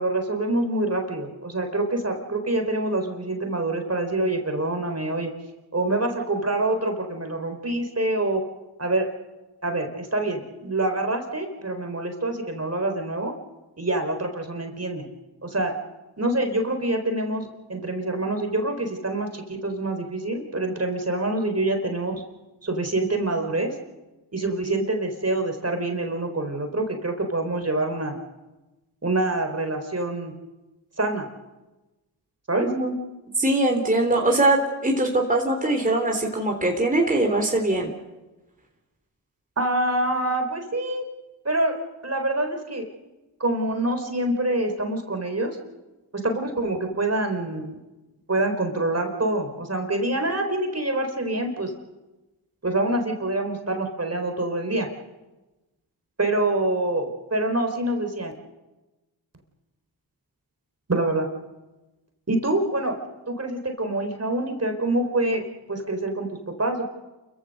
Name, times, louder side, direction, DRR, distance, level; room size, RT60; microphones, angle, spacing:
voice 1, 0.0-5.3 5.7-8.4 8.8-9.1 9.6-13.3 13.8-15.0 15.4-15.7 16.2-22.2 22.6-23.7 24.3-28.1 29.0-30.3 31.0-31.3 32.5-32.7 39.6-41.0 41.4-41.7 42.0-42.9 43.4-45.6 46.1-47.8 48.3-51.7 52.6-54.9 56.2-58.3 60.9-61.3 62.3-63.0 63.3-66.9, right 2 dB, 30° right, 5 dB, 4.0 m, -26 dB
voice 2, 32.6-32.9 33.3-37.9, right 2 dB, 15° right, 2 dB, 3.5 m, -22 dB
28.0 x 15.0 x 6.7 m, 1.1 s
supercardioid pair, 40°, 47 cm